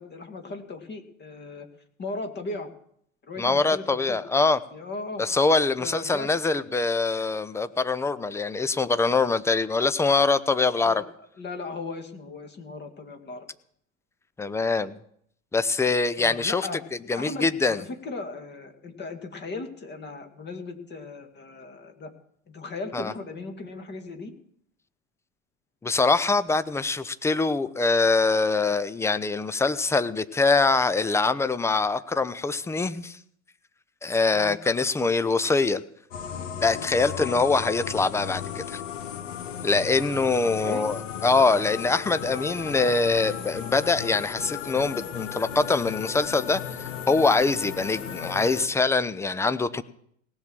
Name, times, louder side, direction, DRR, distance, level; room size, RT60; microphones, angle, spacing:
voice 1, 0.0-1.7 2.0-2.7 3.3-4.5 4.7-5.2 5.8-6.3 10.8-11.1 11.4-13.5 16.2-16.8 17.1-22.1 22.5-24.3 34.3-34.6 37.1-37.4 40.5-40.9 42.3-43.0, left 3 dB, 25° left, 6 dB, 1.9 m, -37 dB
voice 2, 3.4-4.6 5.2-11.0 14.4-15.0 15.5-16.7 17.1-17.8 22.9-23.1 25.8-33.2 34.0-35.8 36.6-38.8 39.6-46.8 47.1-49.8, left 3 dB, 5° left, 13 dB, 0.5 m, -24 dB
sound 1, 36.1-48.7, left 8 dB, 65° left, 1.2 m, -35 dB
17.5 x 6.3 x 7.4 m, 0.68 s
figure-of-eight pair, 75°, 40 cm